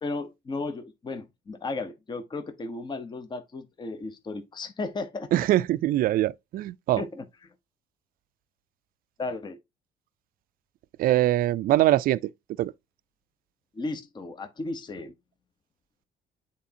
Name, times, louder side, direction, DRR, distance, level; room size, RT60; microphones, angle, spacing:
voice 1, 0.0-5.3 7.0-7.3 9.2-9.6 13.7-15.1, left 3 dB, 25° left, 0.9 m, -35 dB
voice 2, 5.3-7.0 11.0-12.2 12.6-12.7, right 14 dB, 60° right, 0.4 m, -23 dB
8.4 x 4.1 x 2.8 m
cardioid pair, 110°, 17 cm